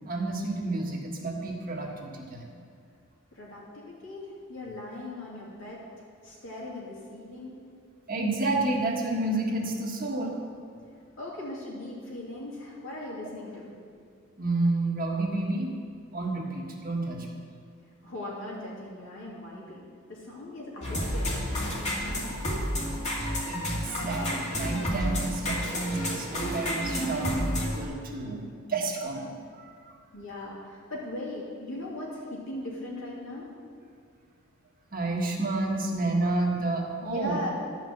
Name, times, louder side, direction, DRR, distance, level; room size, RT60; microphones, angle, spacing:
voice 1, 0.1-2.5 8.1-10.4 14.4-15.7 16.1-17.3 23.5-30.0 34.9-37.4, right 2 dB, 45° right, -1 dB, 1.5 m, -30 dB
voice 2, 3.3-7.5 11.2-13.8 18.0-21.7 30.1-33.5 37.0-37.5, left 1 dB, 65° left, -4 dB, 2.9 m, -39 dB
sound 1, 20.8-27.8, equal, 35° left, 2.2 m, -30 dB
12.0 x 5.6 x 7.8 m, 2.2 s
head